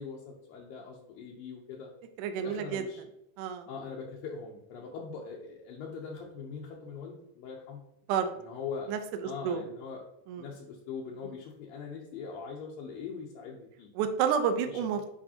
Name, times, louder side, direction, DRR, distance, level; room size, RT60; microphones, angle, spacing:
voice 1, 0.0-1.9 2.4-3.0 3.7-7.8 8.4-8.9 9.2-10.0 10.4-13.9 14.7-14.8, left 5 dB, 75° left, -2 dB, 2.4 m, -41 dB
voice 2, 2.2-2.8 3.4-3.7 8.1-8.3 8.9-9.6 10.3-10.5 11.2-11.3 13.9-15.0, right 7 dB, 85° right, 7 dB, 1.8 m, -30 dB
8.6 x 5.1 x 2.8 m, 0.82 s
omnidirectional pair, 4.4 m